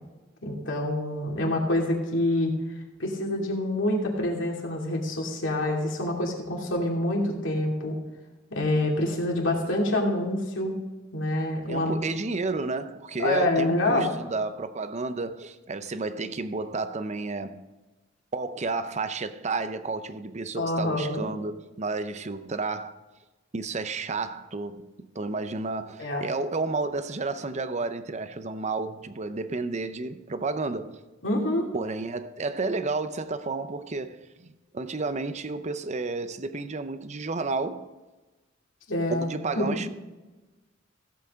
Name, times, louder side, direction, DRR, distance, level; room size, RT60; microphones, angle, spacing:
voice 1, 0.4-2.5 3.0-7.9 8.5-10.7 11.1-12.0 13.2-14.1 20.6-21.3 26.0-26.2 31.2-31.7 38.9-39.3 39.6-39.7, left 1 dB, 75° left, 2.7 m, -26 dB
voice 2, 11.7-17.6 18.3-23.0 23.5-31.0 31.7-37.9 39.1-39.9, right 3 dB, 35° right, 0.7 m, -31 dB
15.5 x 8.2 x 3.7 m
head